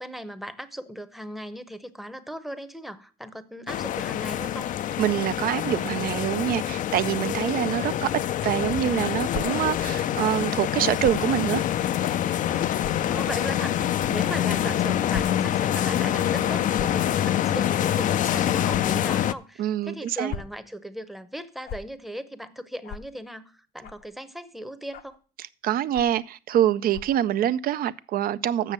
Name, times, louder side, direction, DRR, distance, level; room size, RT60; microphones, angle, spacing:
voice 1, 0.0-4.7 13.1-25.2, equal, ahead, 0.8 m, -37 dB
sound 1, 3.7-19.3, left 11 dB, 50° left, 0.4 m, -26 dB
voice 2, 5.0-8.1 8.4-11.7 19.6-20.3 25.6-28.7, right 11 dB, 60° right, 0.5 m, -25 dB
sound 2, 9.3-9.4 11.0-11.2 12.0-12.1 12.8-12.9 14.0-14.1 15.1-15.2 15.6-15.7 16.7-17.0 18.7-18.8 20.1-20.5 21.6-21.8 22.8-23.0 23.8-24.1 24.9-25.2 25.9-26.2 26.9-27.2, left 7 dB, 70° left, 0.8 m, -36 dB
7.6 x 6.4 x 7.5 m
cardioid pair, 110°, 17 cm